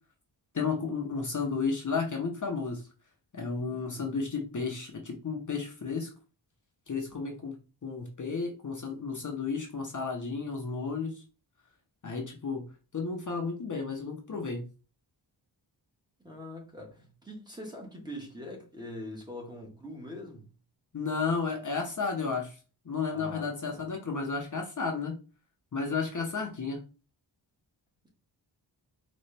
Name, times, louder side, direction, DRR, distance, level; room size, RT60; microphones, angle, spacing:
voice 1, 0.5-2.9 3.3-6.1 6.9-7.5 7.8-11.2 12.0-12.7 12.9-14.6 20.9-22.6 22.8-25.2 25.7-26.8, left 4 dB, 40° left, 0.9 m, -32 dB
voice 2, 3.7-4.0 16.2-20.5 23.1-23.8 28.0-28.1, left 1 dB, 10° right, 1.4 m, -43 dB
4.2 x 3.1 x 3.3 m
wide cardioid pair, 145°, 46 cm